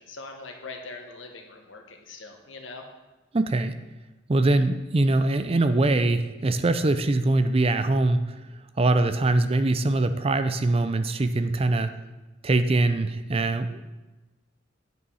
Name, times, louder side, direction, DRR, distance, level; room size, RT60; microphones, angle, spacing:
voice 1, 0.0-2.8, left 3 dB, 85° left, 3 dB, 1.3 m, -42 dB
voice 2, 3.3-3.8 4.3-8.3 8.8-11.9 12.4-13.8, right 2 dB, 30° right, 10 dB, 0.5 m, -23 dB
9.3 x 5.7 x 5.5 m, 1.1 s
head